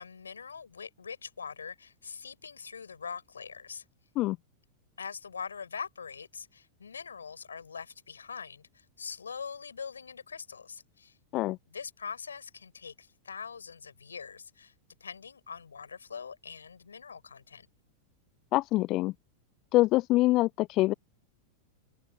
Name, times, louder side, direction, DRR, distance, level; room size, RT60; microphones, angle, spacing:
voice 1, 0.0-3.8 5.0-11.1 11.7-14.7 15.0-17.7, left 6 dB, 70° left, 5.6 m, -43 dB
voice 2, 18.5-19.1 19.7-20.9, left 18 dB, 40° left, 0.5 m, -25 dB
figure-of-eight pair, 90°, 0 cm